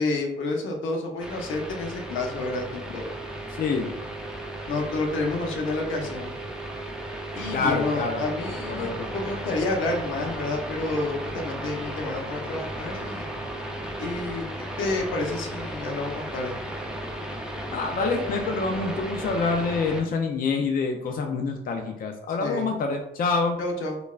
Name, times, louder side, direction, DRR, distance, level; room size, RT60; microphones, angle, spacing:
voice 1, 0.0-3.2 3.8-4.0 4.7-6.3 7.4-13.3 14.0-14.4 14.8-16.6 22.4-22.7 23.6-24.0, left 2 dB, 75° left, 1 dB, 0.8 m, -29 dB
sound 1, 1.2-20.0, right 1 dB, 5° right, 0.5 m, -35 dB
voice 2, 3.6-3.9 7.5-8.2 8.7-9.1 17.7-23.6, left 4 dB, 45° left, 4 dB, 0.5 m, -26 dB
5.0 x 2.3 x 2.4 m, 0.85 s
cardioid pair, 90°, 20 cm